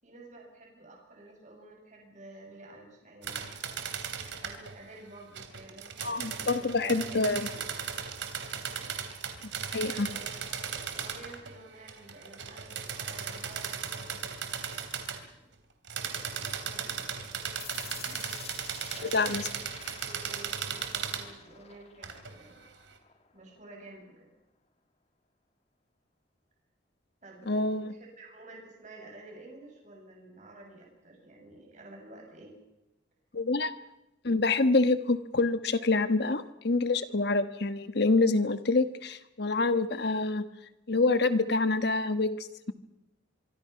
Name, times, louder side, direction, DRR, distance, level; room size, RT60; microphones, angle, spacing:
voice 1, 0.0-3.5 4.4-7.7 8.7-8.9 9.7-14.2 15.3-15.5 16.0-17.2 18.1-18.2 18.8-19.6 20.0-22.6 23.3-24.3 27.2-32.6, right 2 dB, 40° right, 0 dB, 7.7 m, -50 dB
sound 1, 3.2-4.7 5.3-11.6 11.9-15.2 15.8-21.3 22.0-22.3, right 7 dB, 75° right, 3.2 m, -37 dB
voice 2, 6.0-7.5 9.7-10.1 19.0-19.4 27.5-27.9 33.3-33.7 34.2-40.4 40.9-42.7, left 3 dB, 60° left, 10 dB, 1.3 m, -26 dB
sound 2, 17.6-23.6, left 7 dB, 35° left, 1.8 m, -49 dB
25.0 x 24.0 x 5.8 m, 0.94 s
head